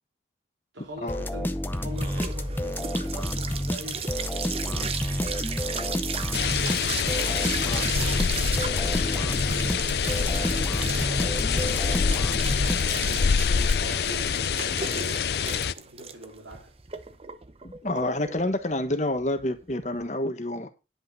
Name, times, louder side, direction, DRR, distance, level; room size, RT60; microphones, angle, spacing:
voice 1, 0.7-6.2 6.9-12.6 13.1-16.7, right 1 dB, 90° right, 3.3 m, -44 dB
sound 1, 1.0-20.0, right 6 dB, 30° right, 0.8 m, -36 dB
sound 2, 1.1-13.3, left 1 dB, 10° left, 0.6 m, -30 dB
sound 3, 6.3-15.7, left 6 dB, 60° left, 0.5 m, -26 dB
voice 2, 17.6-20.7, left 1 dB, 40° left, 1.3 m, -28 dB
10.0 x 5.9 x 5.4 m
head